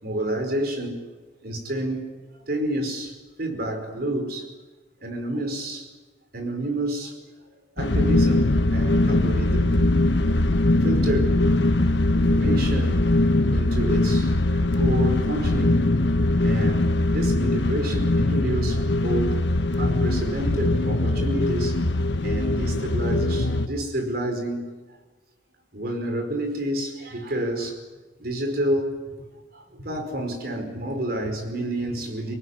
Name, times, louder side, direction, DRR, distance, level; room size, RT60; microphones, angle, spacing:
voice 1, 0.0-1.0 1.4-2.0 2.5-4.5 5.0-5.9 6.3-7.1 7.8-9.9 10.2-10.3 10.8-11.4 12.1-13.1 13.5-15.9 16.4-19.4 19.8-24.7 25.7-27.8 28.2-29.0 29.5-32.4, right 1 dB, 60° right, 5.0 m, -29 dB
sound 1, 7.8-23.7, left 2 dB, 80° left, 1.1 m, -21 dB
25.0 x 20.0 x 9.9 m
head